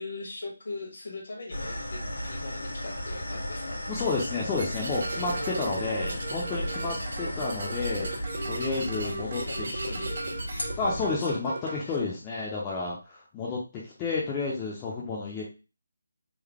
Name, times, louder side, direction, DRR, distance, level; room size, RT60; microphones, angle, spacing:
voice 1, 0.0-3.8 5.2-6.2 6.9-7.0 9.0-9.1 9.5-10.2 11.1-11.5 11.8-12.0, left 2 dB, 60° left, 1 dB, 1.4 m, -40 dB
sound 1, 1.5-11.2, equal, 80° left, 1.3 m, -35 dB
voice 2, 3.9-8.1 8.5-9.7 10.8-15.4, left 4 dB, 15° left, -5 dB, 0.7 m, -31 dB
sound 2, 3.9-4.3 4.6-5.8 6.1-10.7, right 2 dB, 60° right, 1.3 m, -40 dB
sound 3, 4.9-11.8, right 3 dB, 40° right, 0.6 m, -38 dB
3.8 x 2.1 x 3.5 m, 0.30 s
figure-of-eight pair, 170°, 0 cm